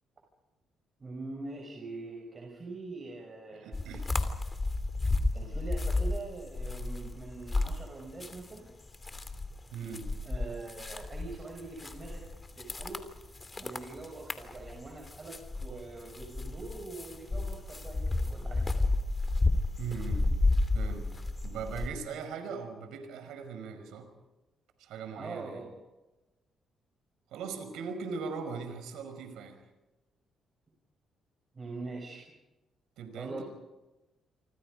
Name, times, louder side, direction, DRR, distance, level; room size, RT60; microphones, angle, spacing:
voice 1, 1.0-3.8 5.3-8.7 10.2-12.3 12.6-13.0 13.6-18.7 25.2-25.8 31.5-32.3 33.1-33.4, right 3 dB, 35° right, 1 dB, 5.9 m, -43 dB
voice 2, 3.6-4.1 9.7-10.1 19.8-20.3 20.7-21.1 21.4-24.1 24.8-25.6 27.3-29.6 33.0-33.4, right 5 dB, 90° right, 7 dB, 5.1 m, -39 dB
sound 1, 3.7-8.6 8.9-21.9, left 2 dB, 25° left, 2.8 m, -32 dB
28.0 x 25.5 x 5.2 m, 1.1 s
cardioid pair, 90°, 0 cm